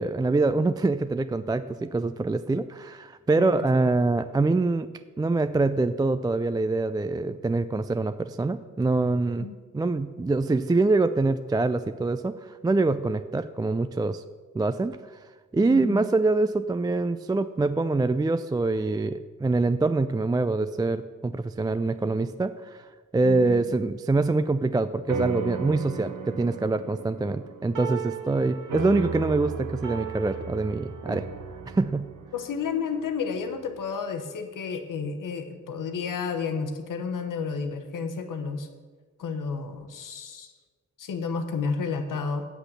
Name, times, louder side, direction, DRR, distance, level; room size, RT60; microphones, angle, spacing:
voice 1, 0.0-4.9 5.2-9.5 9.7-14.2 14.5-15.0 15.5-22.9 23.1-31.3 31.7-32.1, right 3 dB, 15° right, 11 dB, 0.3 m, -25 dB
voice 2, 15.7-16.1 23.2-23.6 32.3-38.7 39.2-40.5 41.0-42.5, left 5 dB, 90° left, 7 dB, 0.9 m, -31 dB
sound 1, 25.1-33.8, right 6 dB, 75° right, 0.8 m, -36 dB
8.1 x 6.0 x 6.7 m, 1.4 s
cardioid pair, 55°, 31 cm